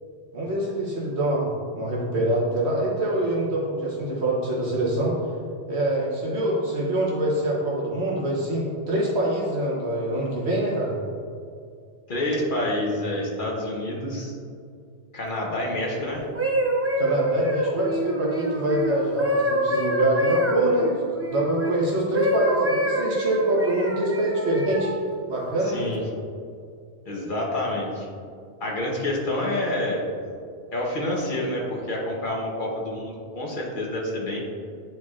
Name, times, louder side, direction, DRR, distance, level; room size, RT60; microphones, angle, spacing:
voice 1, 0.3-1.5 1.7-5.1 5.7-10.9 17.0-24.9 25.3-25.9, right 1 dB, 90° right, -4 dB, 1.3 m, -25 dB
voice 2, 12.1-14.4 15.1-16.3 25.6-26.0 27.0-28.1 28.6-30.0 30.7-34.4, left 1 dB, 55° left, -2 dB, 1.1 m, -28 dB
sound 1, 16.2-21.7 22.1-25.0 25.7-25.9, right 1 dB, 20° right, 0.4 m, -26 dB
9.2 x 4.5 x 2.4 m, 2.3 s
omnidirectional pair, 1.1 m